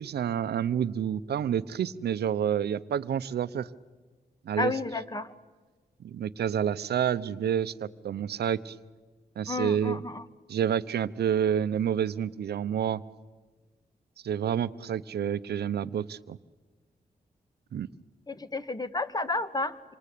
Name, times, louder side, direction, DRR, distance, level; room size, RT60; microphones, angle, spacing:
voice 1, 0.0-3.7 4.4-4.7 6.0-8.8 9.4-10.0 10.5-13.0 14.2-16.4 17.7-17.9, right 9 dB, 90° right, 14 dB, 0.8 m, -29 dB
voice 2, 4.6-5.3 9.5-10.2 18.3-19.9, left 2 dB, 25° left, 11 dB, 1.8 m, -31 dB
26.5 x 26.5 x 8.5 m, 1.3 s
cardioid pair, 55°, 16 cm